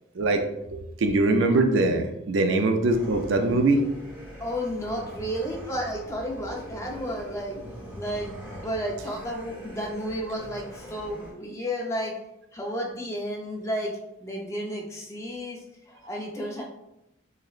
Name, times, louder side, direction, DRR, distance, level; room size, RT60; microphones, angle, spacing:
voice 1, 0.7-3.8, right 2 dB, 65° right, 5 dB, 0.4 m, -22 dB
sound 1, 2.9-11.3, equal, 10° right, 0.9 m, -42 dB
voice 2, 4.4-7.6 8.0-12.1 12.5-13.9 14.2-16.6, equal, 15° left, -1 dB, 0.5 m, -32 dB
6.4 x 2.1 x 2.4 m, 0.86 s
head